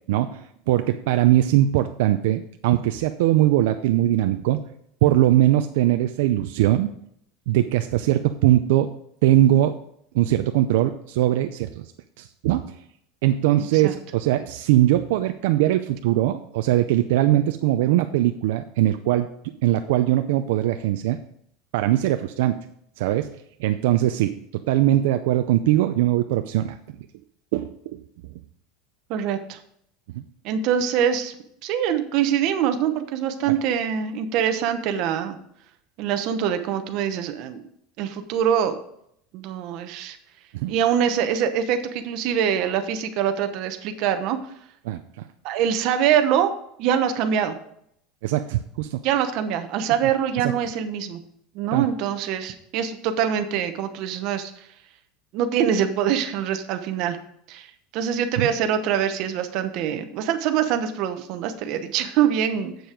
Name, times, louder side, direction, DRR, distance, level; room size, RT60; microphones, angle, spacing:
voice 1, 0.1-4.6 5.0-6.9 7.5-8.9 9.2-9.8 10.1-11.9 12.2-12.8 13.2-19.3 19.6-21.2 21.7-22.7 23.0-23.3 23.6-26.8 27.5-28.0 30.1-30.2 33.5-33.6 40.5-40.7 44.9-45.3 48.2-49.0 50.4-50.5 51.7-51.9 58.4-58.5, right 14 dB, 65° right, 8 dB, 0.5 m, -21 dB
voice 2, 13.6-13.9 29.1-29.6 30.4-31.3 31.6-35.4 36.0-37.7 38.0-38.8 39.3-40.2 40.7-44.4 45.4-46.5 46.8-47.6 49.0-51.2 51.5-54.7 55.3-57.2 57.5-62.7, right 9 dB, 45° right, 8 dB, 0.9 m, -24 dB
7.8 x 7.0 x 5.0 m, 0.71 s
supercardioid pair, 175°, 0 cm